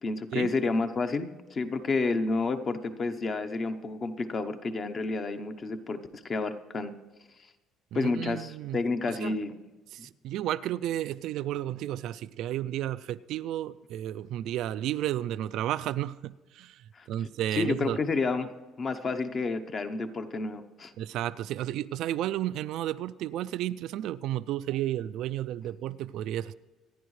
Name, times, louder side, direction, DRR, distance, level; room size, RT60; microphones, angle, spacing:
voice 1, 0.0-6.9 7.9-9.6 10.0-10.1 16.9-17.1 17.5-18.5 18.8-20.9, left 3 dB, 30° left, 0.8 m, -30 dB
voice 2, 7.9-8.8 9.1-9.4 9.9-18.0 21.0-26.5, right 12 dB, 65° right, 0.3 m, -32 dB
25.5 x 10.0 x 3.2 m
cardioid pair, 140°, 0 cm